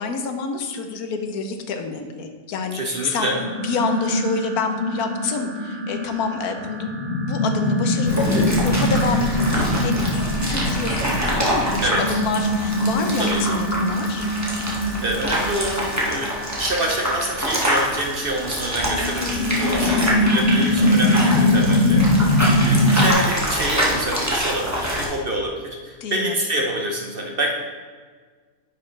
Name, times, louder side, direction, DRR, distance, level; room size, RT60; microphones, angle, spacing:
voice 1, 0.0-3.3 3.6-6.9 7.2-14.3 19.7-20.1 26.0-26.4, left 4 dB, 75° left, 6 dB, 1.3 m, -28 dB
voice 2, 2.7-3.4 11.0-11.5 11.8-12.2 13.2-13.4 14.8-27.5, right 1 dB, 45° right, 1 dB, 0.8 m, -27 dB
sound 1, 2.9-20.9, right 2 dB, 65° right, 1.3 m, -40 dB
sound 2, 3.4-16.2 16.8-16.9 18.8-23.1, left 1 dB, 45° left, 1.1 m, -22 dB
sound 3, 8.0-25.0, equal, 10° right, 1.3 m, -26 dB
9.9 x 6.3 x 3.2 m, 1.5 s
omnidirectional pair, 1.6 m